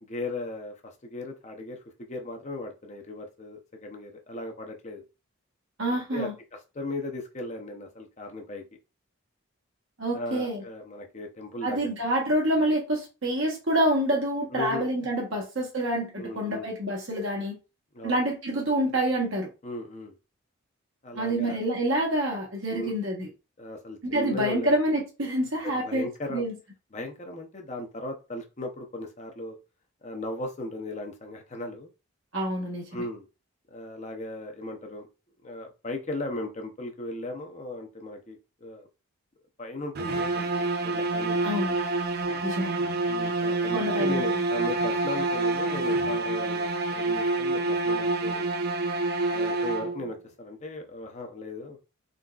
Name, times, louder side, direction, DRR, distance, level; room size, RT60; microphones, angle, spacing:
voice 1, 0.0-5.0 5.9-6.3 6.7-8.6 10.1-11.9 14.5-14.8 15.3-15.4 16.2-16.7 17.9-18.2 19.6-20.1 21.0-21.6 22.7-22.9 23.6-24.8 25.6-26.5 26.9-29.6 30.0-31.9 32.9-33.2 33.7-35.1 35.4-38.9 39.6-41.7 43.1-48.5 49.3-51.8, left 2 dB, 30° left, 0.7 m, -37 dB
voice 2, 5.8-6.3 10.0-10.6 11.6-17.6 18.0-19.5 21.1-23.3 24.0-26.5 32.3-32.9 41.4-41.7 42.4-42.7 43.7-44.2, right 1 dB, 60° right, 1.2 m, -27 dB
sound 1, 39.9-50.2, right 2 dB, 45° right, 0.4 m, -27 dB
3.9 x 3.4 x 2.4 m
head